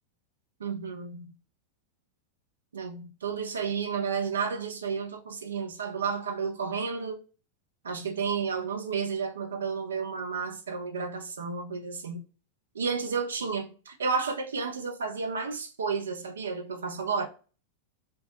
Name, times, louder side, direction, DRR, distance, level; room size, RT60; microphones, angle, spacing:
voice 1, 0.6-1.3 2.7-7.2 7.8-12.2 12.7-17.3, right 5 dB, 70° right, 0.4 m, -32 dB
2.2 x 2.0 x 2.7 m
figure-of-eight pair, 90°, 0 cm